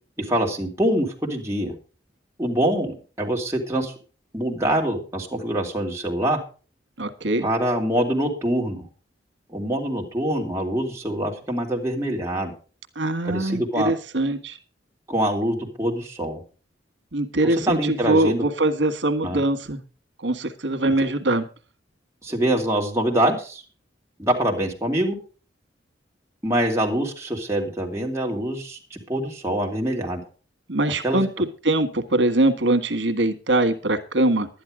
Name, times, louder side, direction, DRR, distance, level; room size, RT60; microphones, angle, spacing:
voice 1, 0.3-1.7 2.4-3.9 4.3-6.4 7.4-8.8 9.5-12.5 13.2-13.9 15.1-16.4 17.7-18.4 19.2-19.4 22.2-23.6 24.2-25.2 26.4-30.2 31.0-31.2, right 1 dB, 15° right, -1 dB, 2.7 m, -24 dB
voice 2, 7.0-7.5 13.0-14.6 17.1-19.8 20.2-21.5 30.7-34.5, right 2 dB, 90° right, 10 dB, 1.6 m, -22 dB
12.0 x 10.5 x 5.0 m, 0.37 s
head